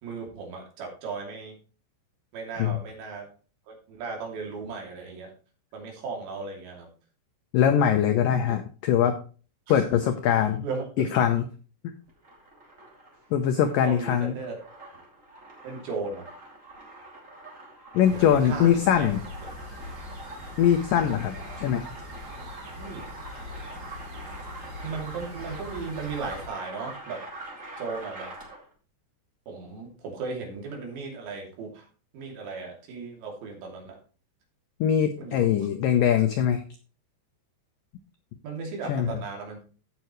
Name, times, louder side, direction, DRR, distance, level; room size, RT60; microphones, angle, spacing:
voice 1, 0.0-1.6 2.3-3.3 3.7-5.3 5.7-6.9 8.4-8.5 9.7-9.9 10.6-11.2 13.8-14.6 15.6-16.3 18.0-19.1 19.4-19.5 22.8-23.0 24.8-27.2 27.8-28.3 29.5-31.9 32.1-34.0 35.2-35.7 38.4-39.6, right 4 dB, 80° right, 1 dB, 5.0 m, -36 dB
voice 2, 7.5-9.2 9.7-10.6 11.0-11.5 11.8-11.9 13.3-14.3 17.9-19.2 20.6-21.8 34.8-36.6 38.9-39.1, left 9 dB, 90° left, 7 dB, 1.9 m, -22 dB
sound 1, 12.1-28.7, right 2 dB, 20° right, 2.3 m, -44 dB
sound 2, 18.0-26.5, left 2 dB, 45° right, 3.8 m, -42 dB
16.0 x 6.0 x 3.1 m, 0.36 s
omnidirectional pair, 5.1 m